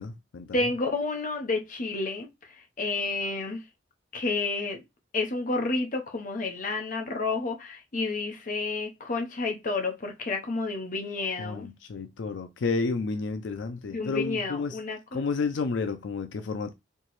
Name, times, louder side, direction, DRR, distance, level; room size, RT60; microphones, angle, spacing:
voice 1, 0.0-0.6 11.4-14.8 15.1-16.7, left 4 dB, 80° left, 0.4 m, -31 dB
voice 2, 0.5-3.6 4.1-4.8 5.1-11.7 13.9-15.2, left 3 dB, 45° left, 0.8 m, -30 dB
4.4 x 2.9 x 3.0 m
head